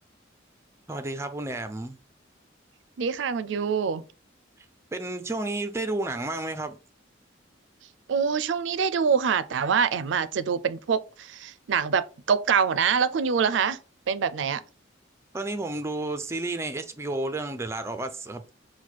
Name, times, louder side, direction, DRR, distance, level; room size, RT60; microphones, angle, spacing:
voice 1, 0.9-2.0 4.9-6.7 15.3-18.4, right 2 dB, 15° right, 0.5 m, -31 dB
voice 2, 3.0-4.0 8.1-13.8 14.1-14.6, right 6 dB, 70° right, 0.4 m, -25 dB
4.5 x 2.2 x 4.1 m
head